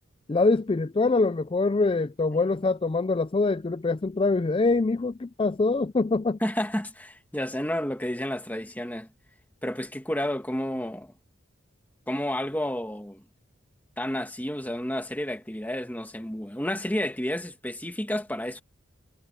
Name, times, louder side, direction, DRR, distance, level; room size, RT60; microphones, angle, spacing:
voice 1, 0.3-6.4, left 3 dB, 25° left, 0.4 m, -24 dB
voice 2, 6.4-9.1 9.6-11.1 12.1-13.2 14.0-18.6, left 1 dB, 10° left, 1.8 m, -31 dB
head